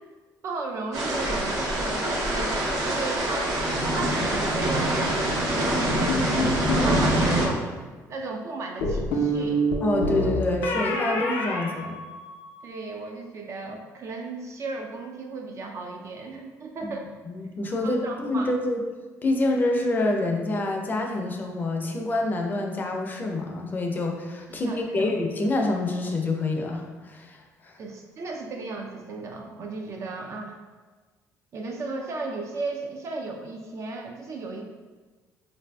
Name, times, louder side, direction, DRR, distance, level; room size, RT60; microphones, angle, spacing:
voice 1, 0.4-2.6 2.8-3.6 3.9-7.7 8.1-9.6 12.6-17.1 17.8-18.5 24.5-25.2 27.8-30.6 31.5-34.6, right 3 dB, 50° right, 2 dB, 0.3 m, -35 dB
sound 1, 0.9-7.5, right 1 dB, 75° right, 0.7 m, -25 dB
sound 2, 6.1-6.9 8.8-12.6, equal, 90° left, 0.5 m, -27 dB
voice 2, 9.8-12.0 16.8-16.9 17.3-18.8 19.2-27.8, left 2 dB, 30° left, 2 dB, 0.4 m, -27 dB
3.8 x 2.5 x 2.2 m, 1.3 s
cardioid pair, 105°, 6 cm